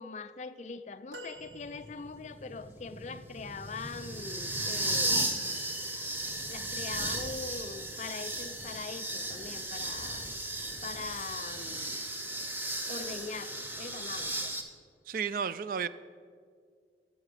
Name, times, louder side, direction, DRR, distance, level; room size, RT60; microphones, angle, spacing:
voice 1, 0.0-5.3 6.5-10.3 10.8-12.0 12.9-14.5, left 4 dB, 40° left, 12 dB, 0.4 m, -42 dB
sound 1, 1.1-2.5 3.3-3.4, equal, 80° right, 1.3 m, -48 dB
sound 2, 1.5-14.6, right 1 dB, 10° right, 0.7 m, -35 dB
voice 2, 15.1-15.9, right 6 dB, 50° right, 15 dB, 0.3 m, -32 dB
13.0 x 7.5 x 4.9 m, 2.1 s
head